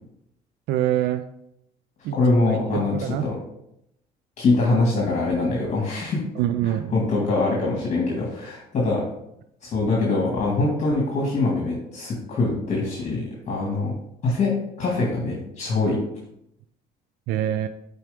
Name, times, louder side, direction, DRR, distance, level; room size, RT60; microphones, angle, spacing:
voice 1, 0.7-1.2 2.0-2.2 2.5-3.3 6.4-6.9 17.3-17.7, right 12 dB, 80° right, 10 dB, 0.4 m, -25 dB
voice 2, 2.1-3.4 4.4-6.2 6.6-9.0 9.6-13.9 14.2-16.0, left 3 dB, 45° left, -3 dB, 2.0 m, -23 dB
7.7 x 4.6 x 3.5 m, 0.79 s
cardioid pair, 110°, 17 cm